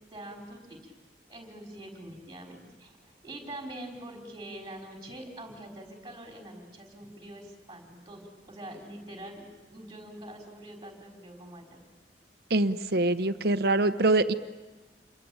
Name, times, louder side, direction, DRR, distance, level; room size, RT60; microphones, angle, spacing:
voice 1, 0.1-0.9 1.3-3.0 3.2-9.4 9.7-11.8, right 1 dB, 20° right, 1 dB, 5.3 m, -44 dB
voice 2, 12.5-14.3, right 2 dB, 60° right, 11 dB, 1.0 m, -24 dB
28.0 x 22.5 x 8.9 m, 1.2 s
head